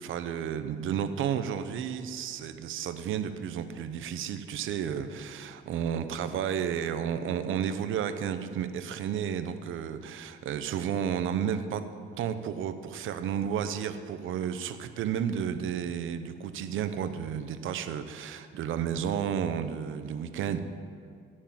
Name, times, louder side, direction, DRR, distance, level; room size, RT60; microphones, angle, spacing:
voice 1, 0.0-11.8 12.2-20.6, right 8 dB, 80° right, 10 dB, 0.9 m, -32 dB
18.0 x 6.6 x 7.4 m, 2.3 s
cardioid pair, 100°, 20 cm